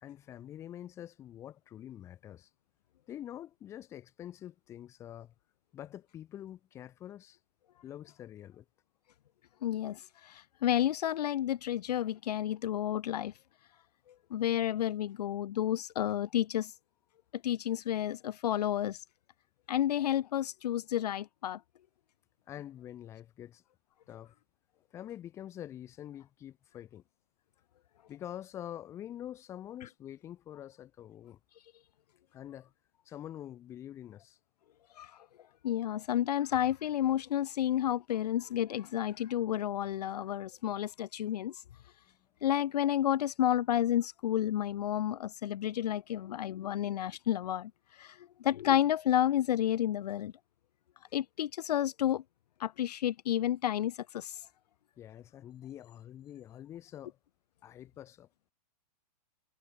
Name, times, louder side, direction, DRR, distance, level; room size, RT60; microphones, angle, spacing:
voice 1, 0.0-2.5 3.1-5.3 5.7-7.4 7.8-8.6 22.5-23.6 24.1-24.3 24.9-27.0 28.1-31.4 32.3-32.7 33.0-34.4 55.0-57.2 57.6-58.3, left 11 dB, 15° left, 1.3 m, -46 dB
voice 2, 9.6-13.3 14.3-16.7 17.3-19.0 19.7-21.6 35.0-35.1 35.6-41.6 42.4-50.3 51.1-52.2 52.6-54.4, left 11 dB, 70° left, 0.6 m, -31 dB
hypercardioid pair, 175°, 21 cm